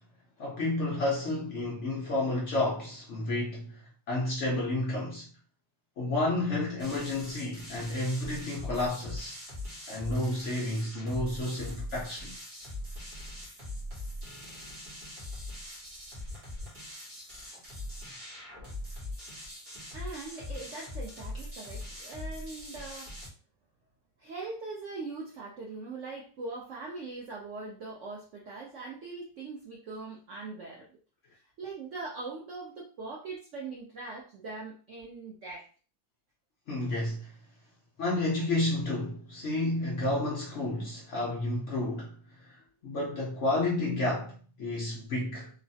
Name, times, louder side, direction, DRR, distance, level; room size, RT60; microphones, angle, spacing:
voice 1, 0.4-3.8 4.1-5.3 6.0-9.4 9.9-12.3 36.7-37.3 38.0-45.5, left 2 dB, 60° left, 0.8 m, -31 dB
sound 1, 6.8-23.3, left 1 dB, 40° right, 0.9 m, -42 dB
voice 2, 19.9-23.1 24.2-30.9 31.6-35.7, right 3 dB, 70° right, 0.7 m, -41 dB
3.1 x 2.0 x 2.7 m
omnidirectional pair, 1.9 m